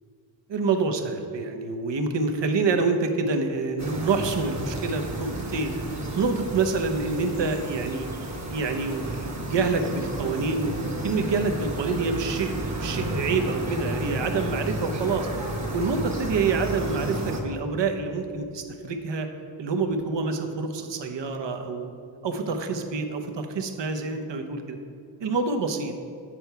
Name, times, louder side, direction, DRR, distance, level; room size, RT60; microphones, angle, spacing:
voice 1, 0.5-5.7 6.2-8.1 8.5-15.3 15.7-19.3 19.6-21.9 22.2-24.8 25.2-25.9, right 4 dB, 65° right, 5 dB, 0.9 m, -27 dB
sound 1, 3.8-17.4, right 1 dB, 35° right, 1.2 m, -32 dB
8.7 x 4.6 x 5.6 m, 2.5 s
wide cardioid pair, 80°, 47 cm